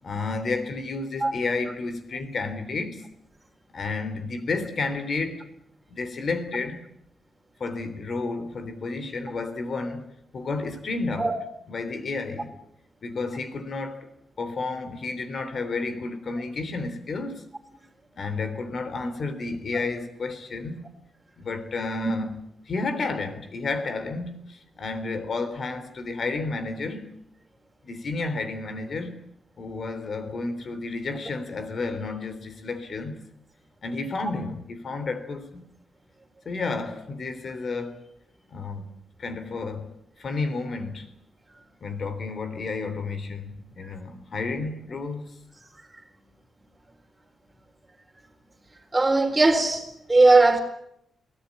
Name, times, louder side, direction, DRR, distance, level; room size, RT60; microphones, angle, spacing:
voice 1, 0.0-3.0 3.7-5.5 5.9-6.9 7.6-11.3 11.7-12.5 13.0-14.1 14.4-17.4 18.1-20.9 21.4-22.3 22.7-27.1 27.8-29.2 29.6-33.2 33.8-35.7 36.5-38.1 38.5-38.9 39.2-41.1 41.8-45.3, left 3 dB, 50° left, 3.4 m, -31 dB
voice 2, 48.9-50.6, right 2 dB, 15° right, 4.0 m, -19 dB
23.0 x 17.5 x 9.9 m
cardioid pair, 120°, 0 cm